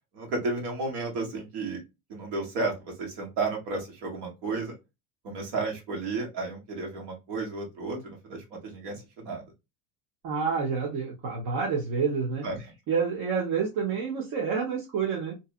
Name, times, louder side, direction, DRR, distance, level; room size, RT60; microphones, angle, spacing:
voice 1, 0.1-1.8 2.1-4.7 5.2-9.5 12.4-12.7, right 3 dB, 65° right, 1.7 m, -33 dB
voice 2, 10.2-12.5 12.9-15.3, right 5 dB, 50° right, 1.0 m, -28 dB
2.7 x 2.4 x 2.4 m
supercardioid pair, 130°, 43 cm